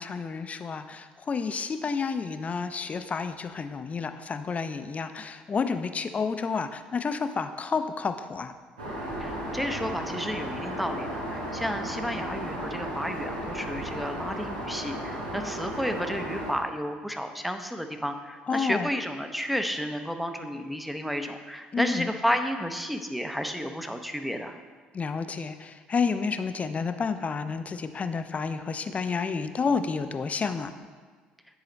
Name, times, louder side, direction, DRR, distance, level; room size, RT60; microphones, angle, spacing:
voice 1, 0.0-8.5 18.5-18.9 21.7-22.1 24.9-30.7, left 5 dB, 35° left, 9 dB, 0.5 m, -30 dB
Aircraft, 8.8-16.5, right 1 dB, 90° right, 1.2 m, -34 dB
voice 2, 9.2-24.6, equal, ahead, 7 dB, 0.7 m, -32 dB
9.8 x 4.1 x 3.9 m, 1.5 s
hypercardioid pair, 55°, 4 cm